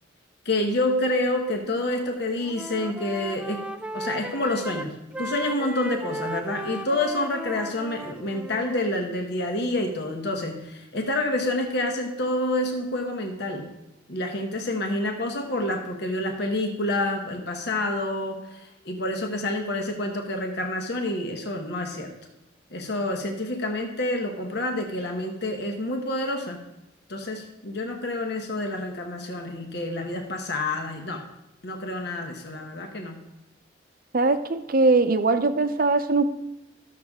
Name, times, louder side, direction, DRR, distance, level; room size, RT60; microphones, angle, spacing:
voice 1, 0.4-3.6 3.9-13.7 14.1-22.1 22.7-26.6 27.1-31.2 31.6-33.2, left 1 dB, 60° left, 3 dB, 1.1 m, -28 dB
Wind instrument woodwind instrument, 1.7-2.1 2.4-8.9, right 1 dB, 5° right, 0.3 m, -36 dB
voice 2, 34.1-36.2, right 3 dB, 50° right, 9 dB, 0.6 m, -21 dB
14.0 x 6.6 x 3.6 m, 0.98 s
head